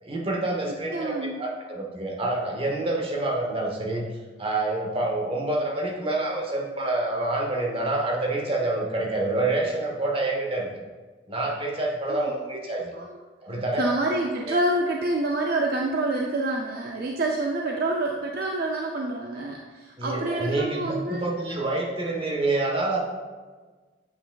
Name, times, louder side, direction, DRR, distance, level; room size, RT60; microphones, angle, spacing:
voice 1, 0.0-4.1 4.4-10.7 11.3-12.9 13.4-13.9 14.5-14.6 20.0-23.0, right 2 dB, 30° right, -1 dB, 1.0 m, -27 dB
voice 2, 0.9-1.4 12.1-12.3 12.9-13.2 13.8-21.3, right 2 dB, 55° right, 1 dB, 0.4 m, -27 dB
7.8 x 5.7 x 2.3 m, 1.4 s
head